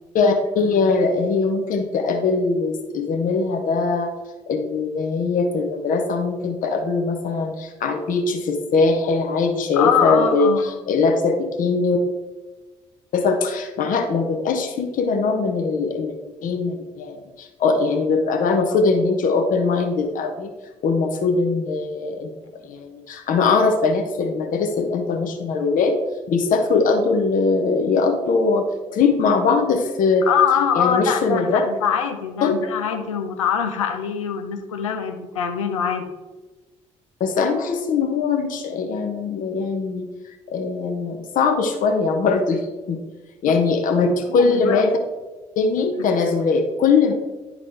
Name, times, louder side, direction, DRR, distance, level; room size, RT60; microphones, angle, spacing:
voice 1, 0.1-4.1 4.5-12.0 13.1-20.5 20.8-22.3 22.6-25.9 26.3-28.7 28.9-30.3 30.7-31.6 32.4-32.6 37.2-43.0 43.4-44.9 45.6-47.1, left 4 dB, 55° left, 4 dB, 1.1 m, -21 dB
voice 2, 9.8-10.6 30.3-36.1 43.4-43.5 44.3-44.8, left 7 dB, 80° left, 5 dB, 0.6 m, -23 dB
10.5 x 3.8 x 3.4 m, 1.2 s
figure-of-eight pair, 45°, 16 cm